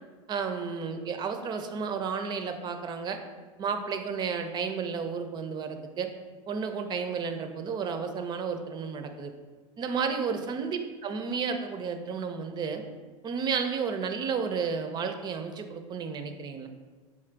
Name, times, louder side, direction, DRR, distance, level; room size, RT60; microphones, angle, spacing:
voice 1, 0.3-3.2 3.6-6.1 6.5-9.3 9.8-12.8 13.2-16.7, right 5 dB, 25° right, 7 dB, 0.4 m, -32 dB
4.1 x 2.5 x 4.4 m, 1.4 s
supercardioid pair, 115°, 17 cm